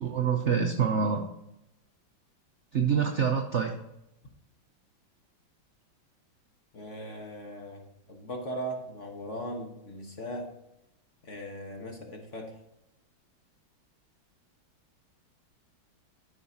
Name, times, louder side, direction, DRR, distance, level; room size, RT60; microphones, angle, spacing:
voice 1, 0.0-1.2 2.7-3.8, right 6 dB, 55° right, 3 dB, 0.8 m, -26 dB
voice 2, 6.7-10.5 11.2-12.6, equal, 40° left, 2 dB, 1.4 m, -39 dB
13.0 x 5.8 x 2.8 m, 0.87 s
omnidirectional pair, 2.2 m